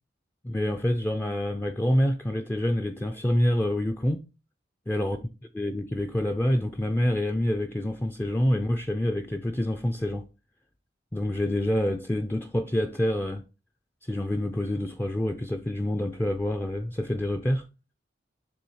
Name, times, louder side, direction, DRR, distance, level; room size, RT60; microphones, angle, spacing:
voice 1, 0.4-4.2 4.9-5.2 5.5-10.3 11.1-13.4 14.0-17.6, left 1 dB, 10° left, 0.4 m, -27 dB
6.9 x 3.4 x 4.7 m
head